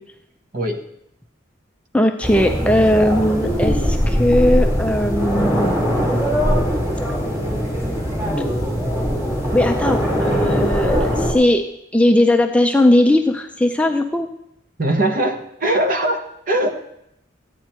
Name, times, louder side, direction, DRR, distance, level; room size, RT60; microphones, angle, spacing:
voice 1, 1.9-6.2 8.4-8.5 9.5-14.3, left 1 dB, 5° left, 5 dB, 0.5 m, -18 dB
sound 1, 2.2-11.3, equal, 15° right, 3.1 m, -21 dB
voice 2, 14.8-16.7, right 1 dB, 45° right, 5 dB, 1.2 m, -21 dB
13.5 x 9.1 x 4.4 m, 0.78 s
head